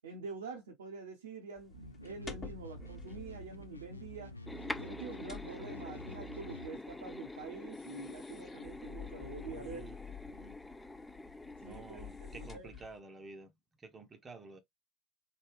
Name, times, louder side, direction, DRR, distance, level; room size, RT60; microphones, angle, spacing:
voice 1, 0.0-4.3 4.7-9.9 11.7-12.7, right 4 dB, 75° right, 0.7 m, -46 dB
sound 1, 1.6-13.0, left 7 dB, 25° left, 1.1 m, -52 dB
sound 2, 1.7-6.7, equal, 90° left, 0.4 m, -49 dB
sound 3, 4.5-12.6, left 2 dB, 10° left, 0.3 m, -46 dB
voice 2, 9.4-10.0 10.3-10.6 11.6-13.5 13.8-14.6, right 4 dB, 25° right, 0.7 m, -50 dB
3.2 x 2.3 x 3.3 m
figure-of-eight pair, 70°, 0 cm